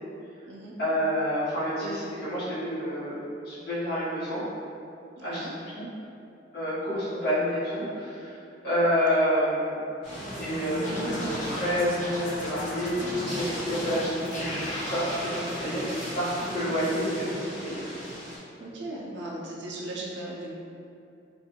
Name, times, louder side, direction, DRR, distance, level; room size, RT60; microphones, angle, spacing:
voice 1, 0.8-3.2 3.4-4.4 5.2-5.9 6.5-8.3 8.6-9.8 10.4-17.8, equal, 60° left, -12 dB, 1.1 m, -28 dB
voice 2, 5.2-5.6 16.6-17.0 18.6-20.5, right 1 dB, 75° right, -4 dB, 0.5 m, -38 dB
sound 1, 10.0-18.4, equal, 5° right, 1.1 m, -35 dB
Scratching (performance technique), 10.8-15.4, left 1 dB, 45° left, 0.4 m, -38 dB
2.5 x 2.3 x 2.9 m, 2.6 s
head